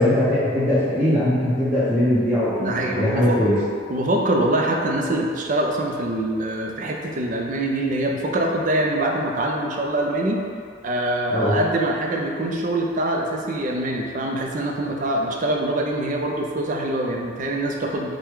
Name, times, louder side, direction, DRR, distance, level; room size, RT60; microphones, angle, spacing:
voice 1, 0.0-3.5 11.3-11.5, left 1 dB, 5° right, -13 dB, 0.7 m, -20 dB
voice 2, 2.6-3.4 3.9-10.4 10.8-18.2, right 1 dB, 40° right, 0 dB, 0.4 m, -24 dB
5.8 x 2.2 x 3.6 m, 2.1 s
head